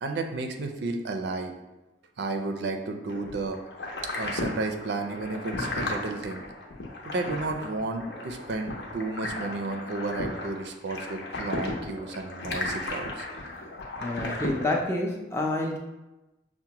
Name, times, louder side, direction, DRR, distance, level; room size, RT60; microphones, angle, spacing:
voice 1, 0.0-1.5 2.2-3.6 4.1-6.4 7.0-13.2, right 3 dB, 65° right, 4 dB, 0.4 m, -32 dB
sound 1, 3.1-14.8, left 2 dB, 70° left, 0.6 m, -35 dB
voice 2, 14.0-15.8, left 1 dB, 15° left, 0 dB, 0.4 m, -28 dB
5.8 x 2.1 x 2.8 m, 1.0 s
head